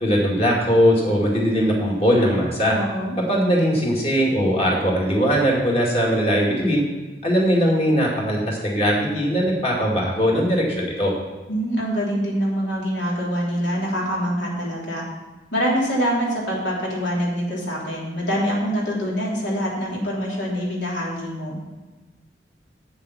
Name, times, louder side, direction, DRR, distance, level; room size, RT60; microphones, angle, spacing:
voice 1, 0.0-2.8 3.3-6.8 7.2-11.1, equal, 30° left, -3 dB, 2.3 m, -20 dB
voice 2, 2.7-3.2 11.5-15.1 15.5-21.6, equal, 75° left, -3 dB, 3.1 m, -25 dB
8.2 x 7.1 x 6.0 m, 1.2 s
head